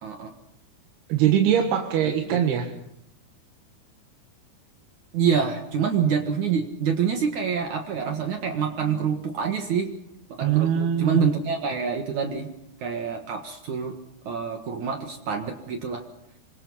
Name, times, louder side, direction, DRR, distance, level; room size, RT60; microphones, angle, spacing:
voice 1, 0.0-0.3 2.0-2.4 5.1-9.9 10.3-12.5 12.8-13.9 14.2-16.0, right 6 dB, 60° right, 4 dB, 2.7 m, -26 dB
voice 2, 1.1-2.7 10.4-11.2, right 10 dB, 85° right, 4 dB, 3.5 m, -22 dB
27.0 x 24.0 x 5.6 m, 0.79 s
omnidirectional pair, 4.4 m